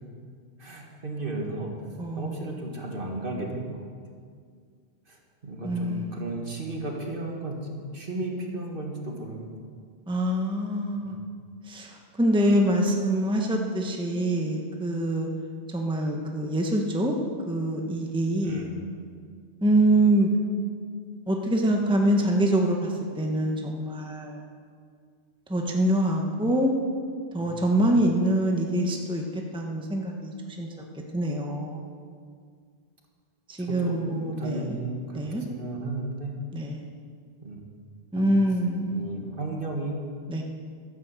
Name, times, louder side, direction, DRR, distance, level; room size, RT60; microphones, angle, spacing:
voice 1, 0.6-1.7 2.2-3.9 5.1-9.5 11.0-11.2 18.4-18.8 27.4-27.8 33.7-36.3 37.4-37.7 38.2-38.3 38.9-40.0, right 2 dB, 50° right, 0 dB, 2.1 m, -34 dB
voice 2, 2.0-2.6 5.6-6.5 10.1-11.2 11.7-15.3 15.7-17.2 17.5-18.7 19.6-20.3 21.3-24.5 25.5-26.7 27.3-30.7 31.1-31.8 33.5-34.8 35.1-35.4 36.5-36.9 38.1-39.1 40.3-40.4, right 1 dB, 5° right, 1 dB, 1.1 m, -25 dB
12.5 x 11.0 x 7.5 m, 2.1 s
omnidirectional pair, 1.1 m